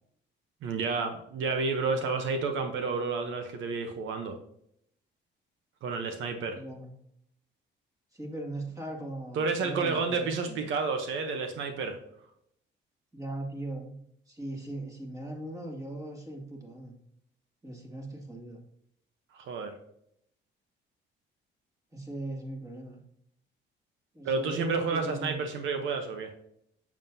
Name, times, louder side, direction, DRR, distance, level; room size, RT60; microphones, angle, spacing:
voice 1, 0.6-4.4 5.8-6.6 9.3-12.0 19.3-19.7 24.2-26.3, right 4 dB, 80° right, 6 dB, 0.9 m, -30 dB
voice 2, 6.5-6.9 8.1-10.6 13.1-14.0 14.3-17.0 17.6-18.6 21.9-23.0 24.1-25.5, right 1 dB, 15° right, 0 dB, 2.3 m, -39 dB
7.2 x 7.2 x 2.7 m, 0.72 s
cardioid pair, 90°, 20 cm